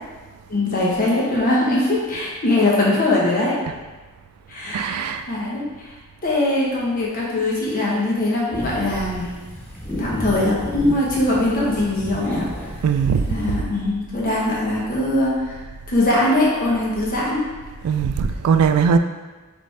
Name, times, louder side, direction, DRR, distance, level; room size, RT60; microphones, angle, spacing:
voice 1, 0.5-3.6 4.5-5.9 6.2-9.3 10.0-12.5 13.3-15.6 15.9-17.4, left 2 dB, 40° left, -5 dB, 0.9 m, -21 dB
voice 2, 4.7-5.2 12.8-13.2 17.8-19.0, right 6 dB, 80° right, 10 dB, 0.3 m, -19 dB
sound 1, 8.5-13.5, left 1 dB, 10° left, 0.4 m, -32 dB
4.1 x 3.1 x 3.2 m, 1.3 s
head